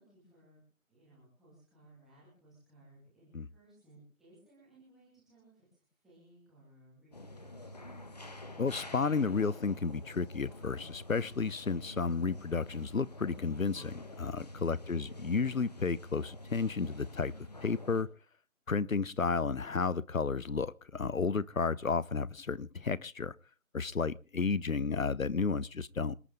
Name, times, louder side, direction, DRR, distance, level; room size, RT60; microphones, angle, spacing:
voice 1, 0.0-8.0 14.7-15.4, right 1 dB, ahead, 2.4 m, -61 dB
sound 1, 7.1-18.0, left 1 dB, 30° left, 1.6 m, -48 dB
voice 2, 8.6-17.3 17.6-18.1 18.7-23.3 23.7-26.2, left 4 dB, 75° left, 1.0 m, -32 dB
27.0 x 9.3 x 3.6 m
figure-of-eight pair, 165°, 41 cm